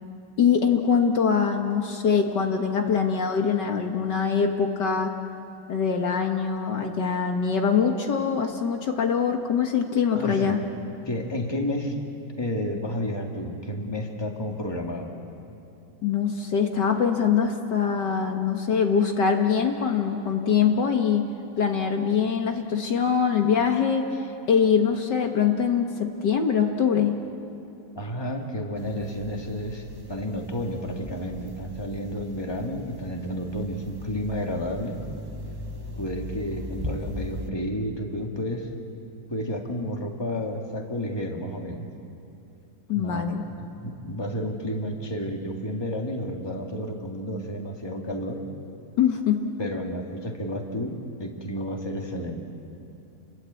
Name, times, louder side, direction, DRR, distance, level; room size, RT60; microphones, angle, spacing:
voice 1, 0.4-5.1 5.7-10.6 16.0-21.3 21.6-27.2 42.9-43.4 49.0-49.4, left 6 dB, 65° left, 4 dB, 2.0 m, -23 dB
voice 2, 10.1-10.6 11.1-12.0 12.4-15.1 28.0-35.0 36.0-38.7 39.3-41.9 42.9-48.4 49.6-52.5, equal, 15° left, 1 dB, 2.2 m, -31 dB
sound 1, 28.7-37.5, left 1 dB, 15° right, 1.2 m, -39 dB
29.0 x 21.5 x 8.4 m, 2.8 s
omnidirectional pair, 2.1 m